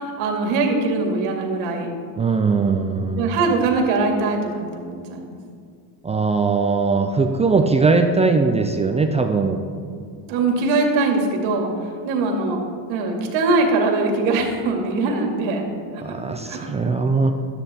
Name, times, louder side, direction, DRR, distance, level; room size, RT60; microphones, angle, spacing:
voice 1, 0.0-1.9 3.2-5.3 10.3-11.7 12.0-12.6 12.9-15.7 16.5-16.6, right 3 dB, 80° right, 2 dB, 2.3 m, -21 dB
voice 2, 2.2-3.3 6.0-9.6 16.0-17.3, right 4 dB, 15° right, 5 dB, 0.3 m, -20 dB
12.5 x 9.9 x 4.3 m, 2.2 s
cardioid pair, 145°, 47 cm